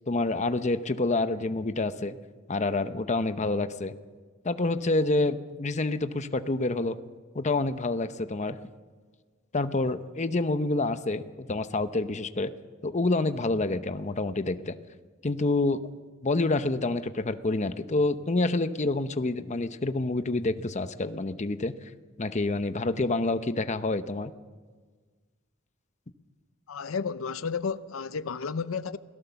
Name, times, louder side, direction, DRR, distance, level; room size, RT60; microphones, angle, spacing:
voice 1, 0.1-2.2 2.5-3.9 4.4-7.0 7.3-8.6 9.5-12.5 12.8-14.7 15.2-15.8 16.2-21.7 22.2-24.3, left 2 dB, 35° left, 0.8 m, -27 dB
voice 2, 26.7-29.0, left 5 dB, 90° left, 0.6 m, -32 dB
28.0 x 17.5 x 7.0 m
head